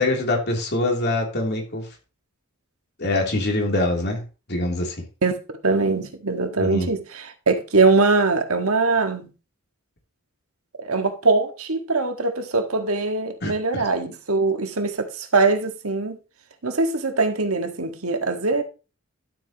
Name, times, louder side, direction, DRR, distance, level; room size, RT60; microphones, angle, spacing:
voice 1, 0.0-1.8 3.0-4.2 4.5-4.9 6.6-6.9 13.4-13.8, left 2 dB, 50° left, 3.0 m, -24 dB
voice 2, 5.6-9.3 10.8-16.2 16.6-18.6, right 3 dB, 80° right, 1.7 m, -22 dB
12.0 x 8.1 x 3.0 m
head